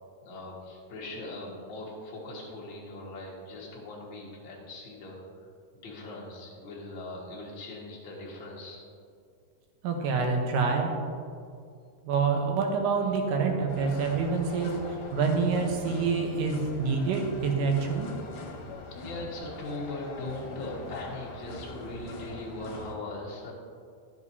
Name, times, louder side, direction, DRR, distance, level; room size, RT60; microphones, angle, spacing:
voice 1, 0.2-5.2 5.7-8.8 19.0-23.5, left 2 dB, 45° left, -4 dB, 1.9 m, -40 dB
voice 2, 9.8-10.9 12.0-18.2, right 5 dB, 75° right, 2 dB, 2.6 m, -27 dB
sound 1, 13.7-22.9, left 3 dB, 70° left, 2.4 m, -42 dB
13.0 x 7.4 x 2.8 m, 2.3 s
omnidirectional pair, 3.9 m